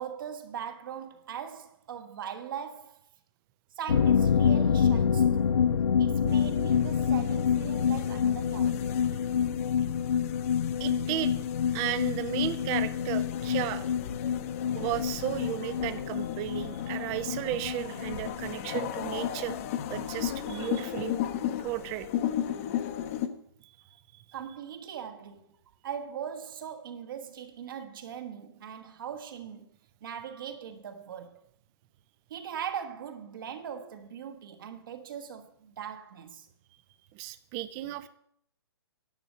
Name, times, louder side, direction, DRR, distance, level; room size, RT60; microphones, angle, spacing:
voice 1, 0.0-3.0 3.8-5.6 6.0-9.0 24.3-29.7 30.0-31.4 32.3-36.5, right 8 dB, 50° right, 1.4 m, -40 dB
sound 1, 3.9-19.3 19.5-19.6 19.9-20.0, left 7 dB, 85° left, 0.5 m, -27 dB
sound 2, 6.3-23.3, left 10 dB, 30° left, 0.9 m, -37 dB
voice 2, 10.8-11.5 11.7-13.9 14.7-19.6 19.9-21.1 21.6-22.1 37.1-38.1, right 14 dB, 20° right, 0.5 m, -34 dB
11.0 x 7.0 x 6.5 m
hypercardioid pair, 155°, 14 cm